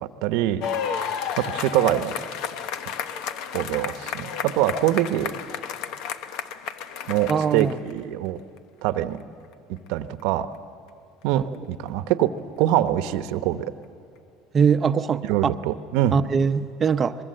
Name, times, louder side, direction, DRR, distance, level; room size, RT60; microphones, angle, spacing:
voice 1, 0.0-0.6 0.9-2.1 3.5-5.3 7.1-8.4 8.8-9.2 9.7-10.5 11.2-12.3 12.6-13.7 15.2-16.2, right 13 dB, 75° right, 11 dB, 0.9 m, -24 dB
sound 1, 0.6-7.9 8.9-9.0, left 8 dB, 65° left, 1.0 m, -32 dB
voice 2, 7.3-7.8 11.3-11.4 14.5-15.5 16.1-17.2, right 6 dB, 25° right, 11 dB, 0.7 m, -22 dB
23.5 x 21.5 x 7.8 m, 2.4 s
cardioid pair, 130°, 0 cm